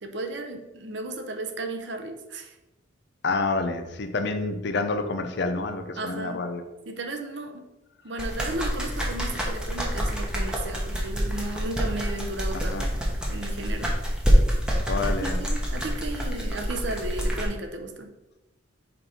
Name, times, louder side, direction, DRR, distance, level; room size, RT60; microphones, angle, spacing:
voice 1, 0.0-2.5 6.0-6.4 6.9-7.6 8.0-12.8 13.3-13.9 15.1-18.1, right 2 dB, 60° right, 6 dB, 0.7 m, -34 dB
voice 2, 3.2-6.6 12.7-12.9 14.9-15.4, left 3 dB, 60° left, 7 dB, 0.6 m, -28 dB
sound 1, 8.2-17.5, equal, 5° right, 0.9 m, -26 dB
5.3 x 4.2 x 4.3 m, 1.0 s
head